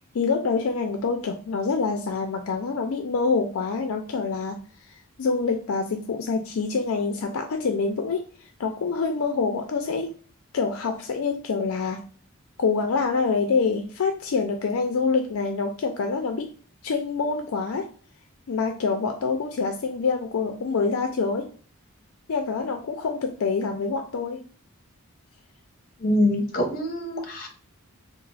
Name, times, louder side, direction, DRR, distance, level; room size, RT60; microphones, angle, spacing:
voice 1, 0.1-4.6 5.2-8.3 8.6-10.1 10.5-12.0 12.6-16.5 16.8-17.9 18.5-21.5 22.3-24.4, left 4 dB, 75° left, 5 dB, 0.4 m, -26 dB
voice 2, 26.0-27.5, left 1 dB, 45° left, 3 dB, 0.8 m, -24 dB
2.9 x 2.0 x 4.0 m, 0.42 s
head